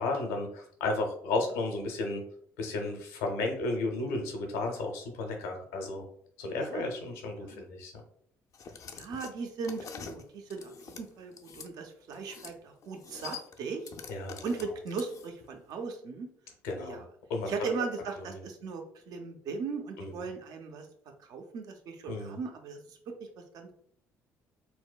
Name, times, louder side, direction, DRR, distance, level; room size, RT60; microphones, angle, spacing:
voice 1, 0.0-2.2 2.6-6.0 6.4-7.9 14.1-14.4 16.6-17.0 17.3-17.7 18.3-18.4 20.0-20.1 22.1-22.4, left 2 dB, 85° left, 2 dB, 0.7 m, -33 dB
sound 1, 8.5-11.7 12.1-12.6 12.8-15.5, left 6 dB, 50° left, 0.4 m, -46 dB
voice 2, 8.9-10.7 11.0-13.8 14.4-16.3 16.8-17.0 17.4-20.9 21.3-23.0 23.5-23.7, right 4 dB, 65° right, 5 dB, 0.6 m, -38 dB
4.1 x 2.1 x 2.3 m, 0.64 s
hypercardioid pair, 55°, 7 cm